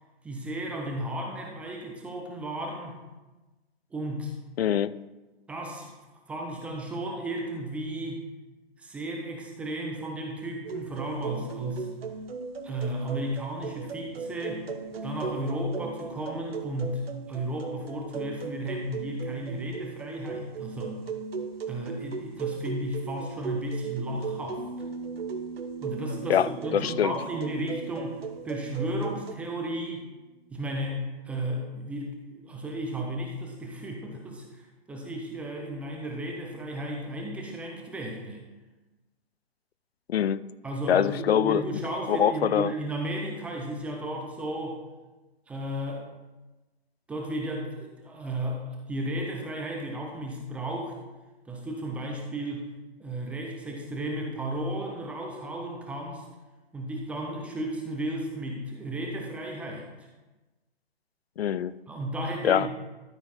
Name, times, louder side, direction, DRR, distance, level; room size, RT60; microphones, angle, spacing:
voice 1, 0.2-3.0 3.9-4.3 5.5-5.9 6.3-8.2 8.8-11.9 12.6-14.7 15.0-20.9 21.7-24.6 25.8-30.1 30.5-34.6 34.9-38.4 40.6-44.8 45.5-46.0 47.1-51.0 51.5-52.7 53.0-56.2 56.7-59.9 61.9-62.7, right 1 dB, 5° right, 0 dB, 0.5 m, -34 dB
voice 2, 4.6-5.0 26.3-27.1 40.1-40.4 40.9-41.6 42.1-42.7 61.4-61.7 62.4-62.7, left 9 dB, 75° left, 17 dB, 0.5 m, -24 dB
sound 1, 10.6-29.3, right 5 dB, 70° right, 1.1 m, -37 dB
Piano, 24.6-30.2, right 3 dB, 30° left, 1.7 m, -43 dB
12.5 x 4.5 x 4.3 m, 1.1 s
hypercardioid pair, 140°, 31 cm